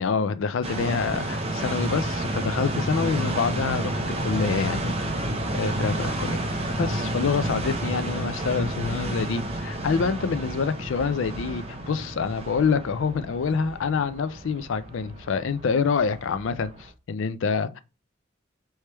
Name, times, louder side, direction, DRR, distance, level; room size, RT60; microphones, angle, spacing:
voice 1, 0.0-5.0 5.5-17.8, left 5 dB, 65° left, 0.4 m, -27 dB
sound 1, 0.6-16.9, right 1 dB, 30° right, 0.7 m, -30 dB
3.3 x 3.1 x 4.4 m
head